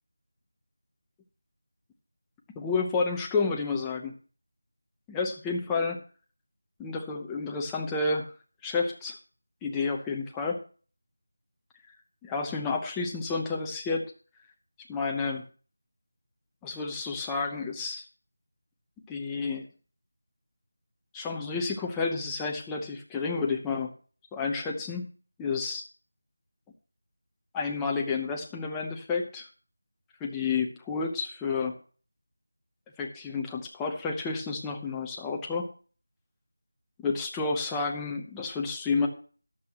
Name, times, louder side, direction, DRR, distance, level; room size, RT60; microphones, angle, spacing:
voice 1, 2.6-4.1 5.1-6.0 6.8-8.3 8.6-9.2 9.6-10.6 12.2-14.0 14.9-15.4 16.6-18.0 19.1-19.7 21.1-23.9 24.3-25.1 25.4-25.8 27.5-29.5 30.2-31.7 33.0-35.7 37.0-39.1, left 4 dB, 5° left, 0 dB, 0.8 m, -30 dB
14.0 x 10.5 x 2.9 m, 0.39 s
figure-of-eight pair, 175°, 0 cm